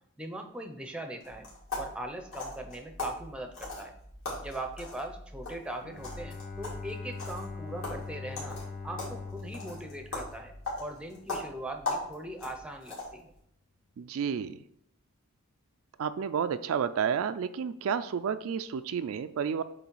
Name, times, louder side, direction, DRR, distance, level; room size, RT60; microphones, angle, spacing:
voice 1, 0.2-1.5 1.8-4.0 4.4-8.6 8.8-13.3, right 1 dB, 5° right, 5 dB, 0.6 m, -40 dB
sound 1, 1.2-13.3, left 2 dB, 60° left, 2.5 m, -40 dB
Bowed string instrument, 5.8-11.0, left 4 dB, 40° left, 0.9 m, -42 dB
voice 2, 14.0-14.6 16.0-19.6, right 7 dB, 65° right, 11 dB, 0.3 m, -31 dB
8.0 x 3.2 x 4.6 m, 0.72 s
head